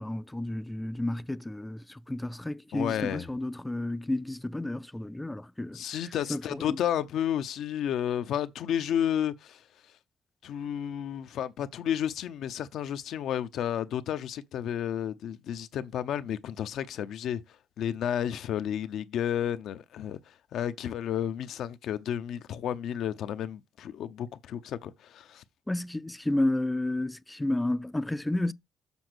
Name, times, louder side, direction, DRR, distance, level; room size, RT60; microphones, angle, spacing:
voice 1, 0.0-5.8 6.3-6.8 25.7-28.5, left 1 dB, 10° left, 0.4 m, -31 dB
voice 2, 2.7-3.3 5.7-9.6 10.4-17.4 17.8-20.2 20.5-25.4, left 10 dB, 75° left, 0.7 m, -32 dB
7.2 x 3.9 x 6.2 m
cardioid pair, 90°, 0 cm